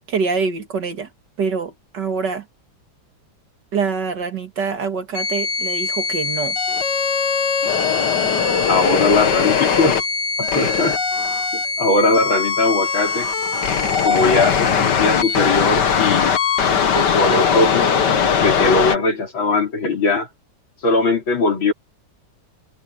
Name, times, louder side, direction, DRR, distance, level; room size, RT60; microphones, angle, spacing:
voice 1, 0.1-1.1 1.4-2.5 3.7-6.6, right 5 dB, 60° right, 2.7 m, -25 dB
sound 1, 5.1-19.0, left 6 dB, 60° left, 2.0 m, -20 dB
voice 2, 8.7-10.0 10.4-11.0 11.5-13.3 14.0-16.3 16.6-17.9 18.4-20.3 20.8-21.7, left 3 dB, 85° left, 5.0 m, -20 dB
omnidirectional pair, 2.1 m